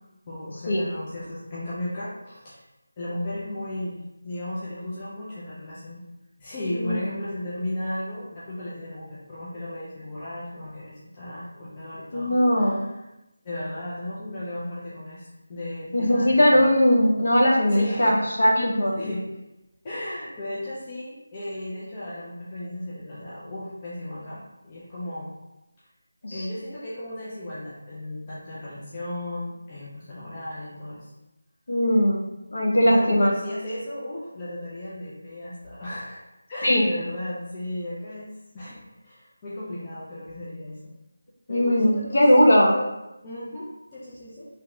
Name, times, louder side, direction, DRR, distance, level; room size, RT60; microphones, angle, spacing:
voice 1, 0.3-2.6 3.0-6.0 6.4-12.9 13.4-16.6 17.7-18.2 18.6-19.3 19.8-25.3 26.3-31.1 32.8-36.2 36.5-40.9 41.5-42.2 42.5-42.9 43.2-44.5, left 1 dB, 15° left, -9 dB, 0.3 m, -35 dB
voice 2, 12.1-12.9 15.9-19.0 26.2-26.5 31.7-32.2 32.5-33.3 36.6-36.9 41.5-42.7, equal, 55° left, -1 dB, 0.6 m, -19 dB
2.8 x 2.2 x 3.0 m, 0.95 s
figure-of-eight pair, 180°, 0 cm